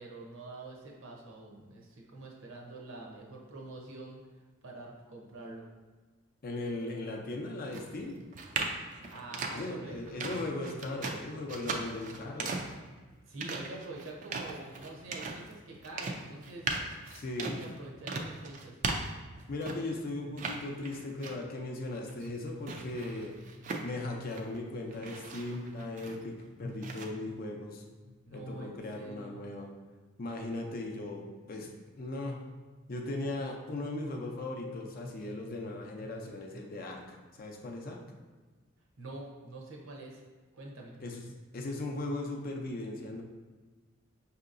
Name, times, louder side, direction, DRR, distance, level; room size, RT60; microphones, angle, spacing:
voice 1, 0.0-4.3 4.6-5.7 9.1-10.2 13.3-16.7 17.4-18.8 28.2-29.4 39.0-40.2 40.5-40.9, right 2 dB, 70° right, -1 dB, 0.8 m, -46 dB
voice 2, 6.4-8.2 9.5-12.5 17.1-17.6 19.5-29.7 30.2-31.7 32.0-32.4 32.9-38.0 41.0-41.3 41.5-43.2, left 2 dB, 45° left, 1 dB, 0.5 m, -38 dB
sound 1, 7.7-20.0 20.3-21.6 21.9-24.6 24.9-26.4 26.8-27.0, right 3 dB, 35° right, 0.3 m, -38 dB
5.5 x 2.8 x 2.5 m, 1.3 s
head